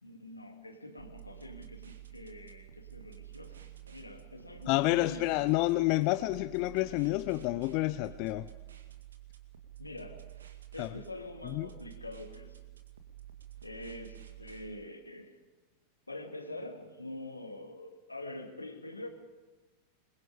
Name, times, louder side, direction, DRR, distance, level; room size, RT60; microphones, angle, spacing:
voice 1, 0.0-5.3 9.8-10.2 10.7-12.6 13.6-15.4 16.1-19.1, left 2 dB, 85° left, 4 dB, 2.8 m, -45 dB
sound 1, 1.0-14.7, right 14 dB, 70° right, 2.1 m, -50 dB
voice 2, 4.7-8.5 10.8-10.9 11.5-11.7, left 19 dB, 45° left, 13 dB, 0.6 m, -29 dB
26.0 x 22.0 x 5.3 m, 1.2 s
figure-of-eight pair, 90°, 0 cm